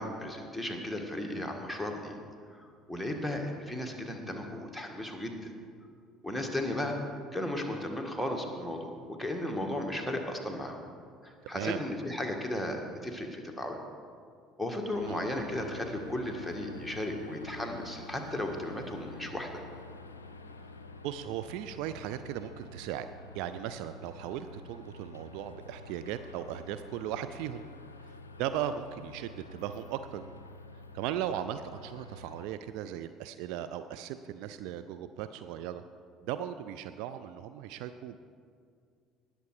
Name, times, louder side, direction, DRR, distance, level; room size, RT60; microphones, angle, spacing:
voice 1, 0.0-2.1 2.9-5.3 6.2-7.0 7.3-10.8 11.2-13.8 14.6-19.6, left 1 dB, ahead, 3 dB, 1.7 m, -35 dB
sound 1, 14.9-32.5, left 2 dB, 80° left, 0.4 m, -49 dB
voice 2, 21.0-23.1 23.3-27.6 28.4-30.3 30.9-35.8 36.2-38.2, right 10 dB, 60° right, 10 dB, 0.4 m, -37 dB
18.5 x 6.9 x 4.8 m, 2.2 s
figure-of-eight pair, 55°, 0 cm